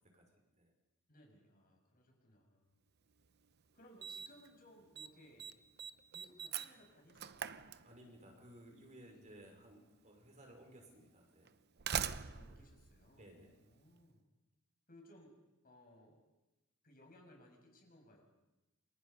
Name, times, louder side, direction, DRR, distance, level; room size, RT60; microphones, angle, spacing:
voice 1, 1.1-2.8 3.7-5.5 6.1-8.1 9.1-9.4 12.3-14.2 14.9-15.4 15.6-16.2 16.8-18.2, left 1 dB, 45° left, 2 dB, 6.7 m, -63 dB
Slam, 3.2-3.3 4.0-4.5 4.7-5.1 5.4-8.3 9.4-9.5 10.4-10.5 11.5-13.8, right 8 dB, 50° right, 0.8 m, -43 dB
voice 2, 7.8-11.5 13.1-13.6, right 1 dB, 35° right, 2 dB, 5.3 m, -58 dB
29.5 x 26.5 x 5.5 m, 1.0 s
head